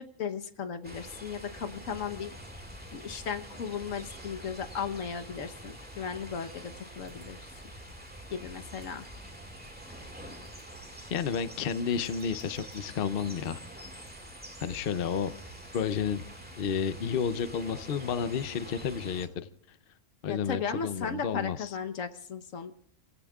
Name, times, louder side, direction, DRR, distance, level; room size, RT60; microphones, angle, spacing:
voice 1, 0.0-2.3 2.9-7.4 8.3-9.1 20.3-22.7, left 6 dB, 80° left, 7 dB, 1.4 m, -36 dB
sound 1, 0.8-19.3, right 1 dB, 5° right, 1.9 m, -46 dB
voice 2, 11.1-13.6 14.6-15.3 15.7-16.2 16.6-19.5 20.2-21.7, left 7 dB, 55° left, 13 dB, 0.8 m, -31 dB
29.0 x 16.5 x 2.4 m, 0.70 s
omnidirectional pair, 1.3 m